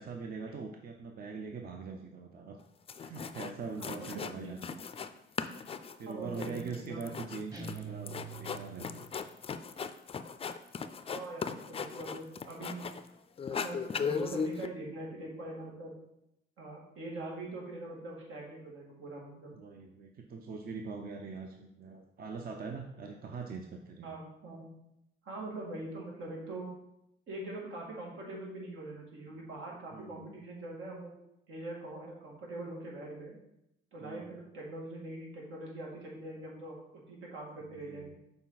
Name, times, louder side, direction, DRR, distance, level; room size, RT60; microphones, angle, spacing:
voice 1, 0.0-2.6 3.0-4.8 6.0-8.1 8.4-9.1 19.5-24.2 29.9-30.4 34.0-34.4 37.6-38.2, right 4 dB, 50° right, 3 dB, 0.7 m, -42 dB
sound 1, 2.6-2.7 2.9-3.5 3.8-5.1 5.4-13.1 13.4-14.7, left 6 dB, 30° left, 0.4 m, -38 dB
voice 2, 3.8-4.5 6.1-7.1 11.1-12.9 13.5-15.9 16.6-19.6 24.0-24.7 25.2-26.7 27.3-31.1 31.5-33.4 33.9-36.7 37.1-38.2, right 2 dB, 80° right, -2 dB, 2.1 m, -43 dB
sound 2, 7.5-9.2, right 5 dB, 20° right, 1.1 m, -45 dB
7.0 x 4.3 x 4.0 m, 0.82 s
cardioid pair, 90°, 20 cm